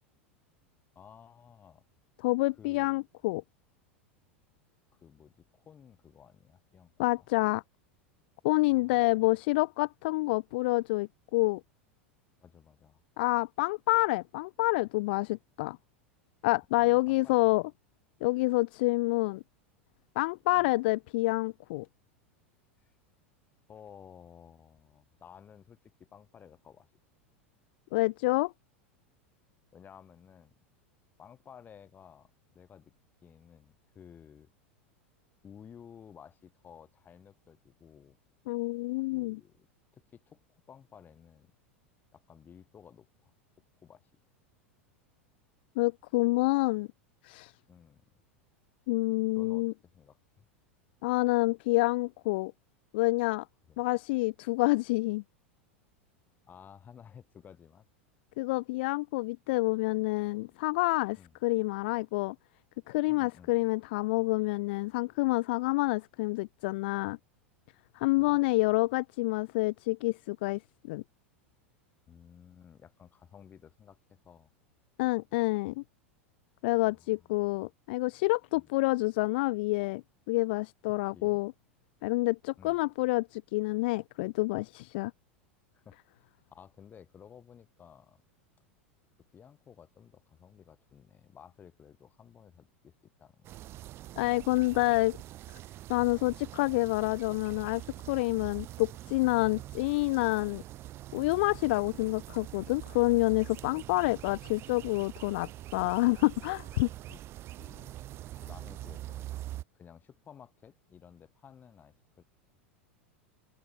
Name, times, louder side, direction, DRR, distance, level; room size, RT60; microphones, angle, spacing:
voice 1, 0.9-1.8 2.6-3.0 4.9-6.9 7.2-7.3 8.7-9.0 12.4-13.0 16.7-17.4 20.6-20.7 22.8-22.9 23.7-26.9 29.7-30.5 31.2-32.9 33.2-34.5 35.4-38.2 39.1-41.5 42.1-43.3 43.8-44.1 47.7-48.2 49.3-50.5 53.7-53.8 56.5-57.8 61.2-61.3 63.1-63.6 68.2-68.4 72.1-74.5 76.7-77.6 78.5-78.7 81.1-81.4 82.6-82.8 85.7-88.2 89.3-93.7 101.4-101.7 107.1-108.1 108.3-112.2, left 8 dB, 25° left, 4.9 m, -55 dB
voice 2, 2.2-3.4 7.0-7.6 8.4-11.6 13.2-15.8 16.4-17.6 18.2-19.4 20.2-21.9 27.9-28.5 38.5-39.4 45.8-46.9 47.2-47.5 48.9-49.7 51.0-52.5 52.9-53.4 53.8-55.2 58.4-62.4 62.9-67.2 67.9-70.6 70.9-71.0 75.0-75.8 76.6-80.0 80.3-81.5 82.0-85.1 94.2-95.2 95.9-100.6 101.1-106.9, left 22 dB, 55° left, 0.4 m, -28 dB
sound 1, 93.4-109.6, right 14 dB, 40° right, 1.0 m, -44 dB
open air
figure-of-eight pair, 85°, 7 cm